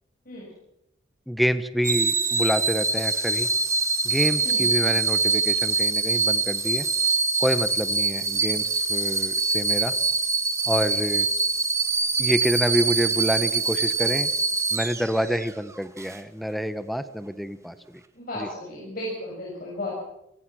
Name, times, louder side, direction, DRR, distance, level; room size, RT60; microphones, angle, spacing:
voice 1, 1.3-3.5 4.0-6.9 7.4-9.9 10.7-11.3 12.2-14.3 14.7-17.8 18.4-18.5, equal, ahead, 12 dB, 1.1 m, -27 dB
sound 1, 1.8-15.5 16.0-16.2, right 4 dB, 15° right, 1.5 m, -24 dB
voice 2, 18.1-19.9, left 1 dB, 50° left, -4 dB, 7.5 m, -34 dB
29.5 x 19.0 x 6.3 m, 0.83 s
head